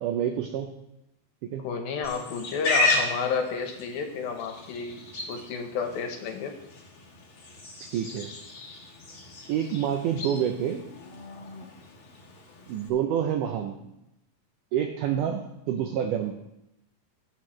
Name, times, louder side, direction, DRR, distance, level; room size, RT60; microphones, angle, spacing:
voice 1, 0.0-0.7 1.4-1.7 7.9-8.3 9.5-10.9 12.7-13.9 14.7-16.3, right 9 dB, 85° right, 4 dB, 1.8 m, -28 dB
voice 2, 1.6-6.5, left 5 dB, 75° left, 5 dB, 2.7 m, -31 dB
Livestock farm animals working animals, 2.0-12.9, left 2 dB, 45° left, 1.9 m, -34 dB
20.0 x 6.7 x 3.2 m, 0.88 s
omnidirectional pair, 4.5 m